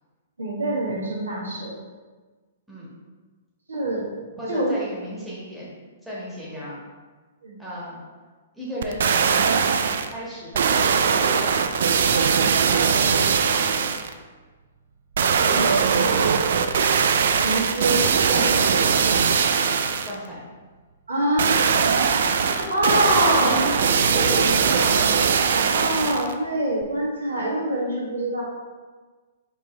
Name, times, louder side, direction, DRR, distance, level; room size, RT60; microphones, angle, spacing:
voice 1, 0.4-1.7 3.7-4.1 4.5-4.7 7.4-7.6 15.4-16.5 17.4-18.8 21.1-21.6 22.4-23.6 25.7-28.4, right 1 dB, 85° right, -5 dB, 1.3 m, -25 dB
voice 2, 4.4-5.7 6.0-6.8 7.6-8.0 8.5-11.5 12.1-13.9 20.0-20.4 23.3-25.1, equal, ahead, -9 dB, 1.5 m, -34 dB
sound 1, 8.8-10.1 10.5-14.1 15.2-20.1 21.4-26.3 26.8-26.9, right 6 dB, 65° right, 0.3 m, -20 dB
5.2 x 3.0 x 3.2 m, 1.4 s
figure-of-eight pair, 120°, 0 cm